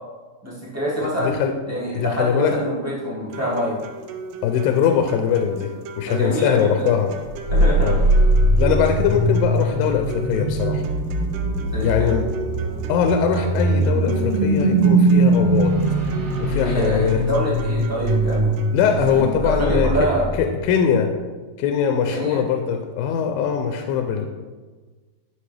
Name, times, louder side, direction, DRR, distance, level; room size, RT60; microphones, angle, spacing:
voice 1, 0.4-1.3 1.7-3.8 6.0-6.9 7.5-7.9 11.6-12.2 16.5-18.6 19.1-20.3 22.1-22.4, equal, 10° right, -8 dB, 0.6 m, -26 dB
voice 2, 1.2-1.5 1.9-2.6 4.4-5.7 6.0-7.1 7.8-8.1 8.6-10.8 11.8-12.3 12.9-15.7 16.4-17.2 18.7-20.1 20.4-21.1 21.6-24.3, left 7 dB, 85° left, 5 dB, 2.3 m, -21 dB
sound 1, 3.3-19.3, right 3 dB, 80° right, 2.2 m, -35 dB
sound 2, 7.5-20.7, right 2 dB, 55° right, 3.0 m, -21 dB
11.0 x 6.3 x 3.4 m, 1.4 s
omnidirectional pair, 4.2 m